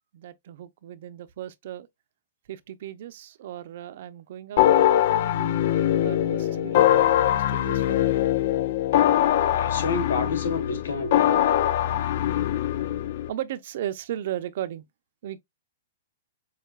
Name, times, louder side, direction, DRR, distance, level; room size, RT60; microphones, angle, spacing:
voice 1, 0.1-1.9 2.5-5.6 6.0-8.1 12.7-12.9 13.3-14.8 15.2-15.4, right 11 dB, 60° right, 0.7 m, -36 dB
sound 1, 4.6-13.3, left 12 dB, 55° left, 0.4 m, -22 dB
voice 2, 9.5-11.7, left 4 dB, 80° left, 1.6 m, -30 dB
6.6 x 2.5 x 2.4 m
hypercardioid pair, 145°, 0 cm